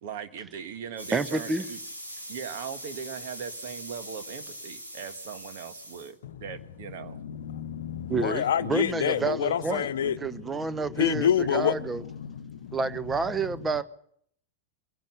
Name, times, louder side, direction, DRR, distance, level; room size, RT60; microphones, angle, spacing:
voice 1, 0.0-1.8 2.3-7.2, right 7 dB, 50° right, 1.8 m, -39 dB
sound 1, 1.0-6.1, equal, 85° right, 7.7 m, -41 dB
voice 2, 1.1-1.6 8.1-12.0 12.7-13.8, right 3 dB, 15° right, 1.0 m, -29 dB
voice 3, 7.0-10.4 10.7-12.8, left 9 dB, 60° left, 0.9 m, -28 dB
24.5 x 16.5 x 6.9 m
figure-of-eight pair, 90°, 0 cm